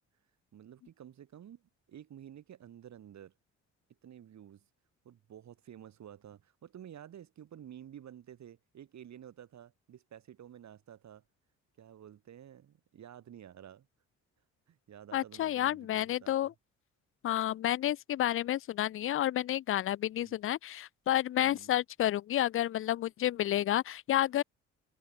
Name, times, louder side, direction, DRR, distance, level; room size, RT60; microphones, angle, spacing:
voice 1, 0.5-3.3 4.0-4.7 5.0-11.2 11.8-13.9 14.7-16.5 20.2-20.4 21.4-21.7, right 10 dB, 65° right, 7.9 m, -51 dB
voice 2, 15.1-16.5 17.2-24.4, left 12 dB, 45° left, 0.4 m, -30 dB
open air
cardioid pair, 90°, 30 cm